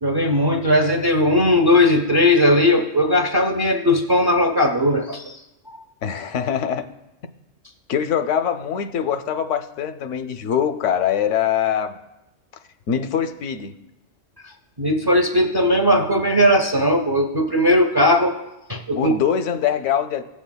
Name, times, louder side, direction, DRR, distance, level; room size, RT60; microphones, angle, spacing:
voice 1, 0.0-5.4 5.7-5.8 14.4-14.5 14.8-18.3 18.7-19.1, left 1 dB, 35° right, 3 dB, 0.4 m, -18 dB
voice 2, 6.0-6.9 7.9-12.0 12.9-13.8 18.9-20.2, left 8 dB, 80° left, 10 dB, 0.9 m, -23 dB
15.5 x 7.3 x 2.2 m, 0.93 s
omnidirectional pair, 1.2 m